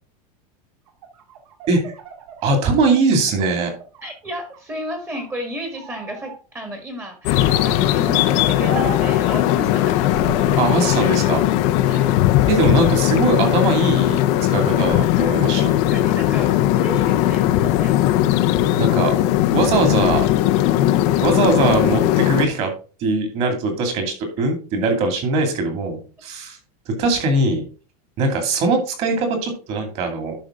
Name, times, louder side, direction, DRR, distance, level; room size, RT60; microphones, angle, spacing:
sound 1, 0.9-4.1 4.5-5.3 5.7-6.4 7.4-7.9 8.7-9.2 10.0-11.0 11.5-12.5 12.9-13.6, right 6 dB, 60° right, 2.1 m, -37 dB
voice 1, 2.4-3.7 10.6-11.4 12.5-14.2 14.5-15.8 18.8-19.1 19.5-20.3 21.2-22.7 23.0-26.6 26.9-27.6 28.2-30.3, right 3 dB, 30° right, 5 dB, 2.4 m, -21 dB
voice 2, 4.0-10.1 11.8-12.2 13.6-13.7 15.6-18.0 24.4-24.5, equal, 10° right, 6 dB, 1.5 m, -33 dB
sound 2, 7.3-22.5, left 13 dB, 35° left, 0.5 m, -18 dB
11.5 x 5.2 x 3.6 m, 0.36 s
supercardioid pair, 170°, 20 cm